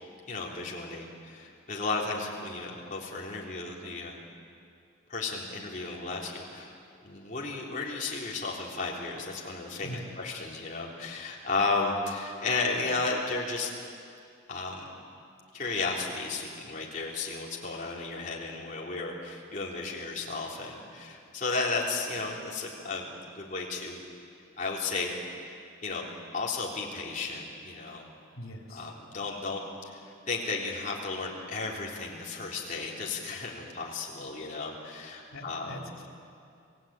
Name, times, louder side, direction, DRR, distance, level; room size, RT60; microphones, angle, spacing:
voice 1, 0.3-4.2 5.1-6.7 7.0-13.7 14.5-14.9 15.5-24.0 24.6-26.1 26.3-28.0 28.7-29.6 29.9-35.7, left 3 dB, 40° left, -3 dB, 3.6 m, -34 dB
voice 2, 28.3-29.0 35.3-36.1, equal, 85° left, 1 dB, 3.4 m, -42 dB
28.0 x 17.5 x 8.9 m, 2.4 s
head